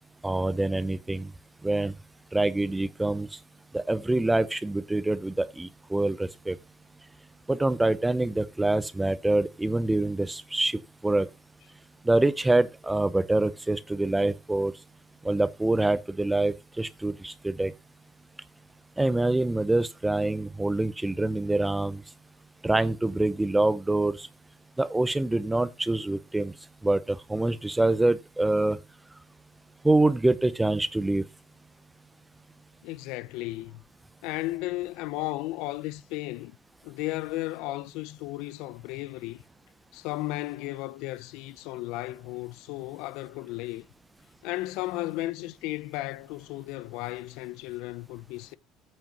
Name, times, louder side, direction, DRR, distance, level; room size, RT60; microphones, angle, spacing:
voice 1, 0.2-1.3 1.6-1.9 2.3-3.3 3.7-6.6 7.5-11.3 12.0-14.7 15.2-17.7 19.0-22.0 22.6-24.3 24.8-26.5 26.8-28.8 29.8-31.2, right 2 dB, 10° right, 0.6 m, -25 dB
voice 2, 32.8-33.8 34.2-36.6 36.8-39.4 39.9-43.8 44.4-48.6, left 18 dB, 80° left, 0.5 m, -34 dB
9.1 x 5.6 x 5.1 m
cardioid pair, 140°, 0 cm